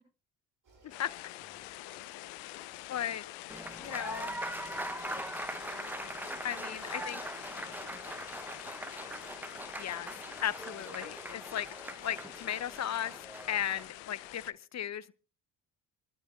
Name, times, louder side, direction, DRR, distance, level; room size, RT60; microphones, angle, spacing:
sound 1, 0.6-14.5, right 4 dB, 45° right, 5.5 m, -62 dB
sound 2, 0.9-14.5, left 20 dB, 70° left, 0.7 m, -46 dB
voice 1, 1.3-1.6 6.9-9.6, left 6 dB, 85° left, 3.7 m, -61 dB
voice 2, 2.9-3.2 3.8-4.4 6.4-7.2 9.8-10.1 10.4-11.7 12.0-13.2 13.5-15.1, left 10 dB, 35° left, 0.9 m, -35 dB
Applause, 3.5-13.9, right 1 dB, 5° right, 0.9 m, -41 dB
24.5 x 12.5 x 3.2 m
hypercardioid pair, 55°, 46 cm